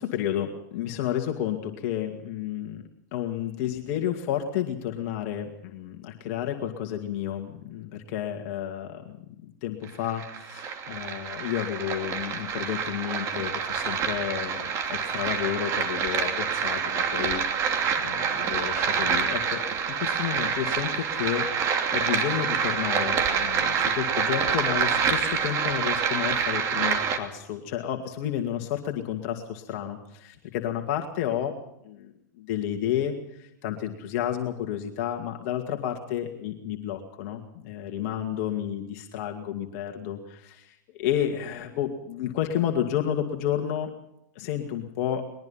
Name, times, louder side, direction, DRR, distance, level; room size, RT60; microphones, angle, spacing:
voice 1, 0.0-2.8 3.1-31.5 31.8-43.9 44.4-45.2, left 10 dB, 45° left, 3 dB, 2.3 m, -31 dB
sound 1, 9.8-27.2, right 6 dB, 30° right, 2.8 m, -27 dB
21.5 x 21.0 x 5.8 m, 0.78 s
hypercardioid pair, 125°, 10 cm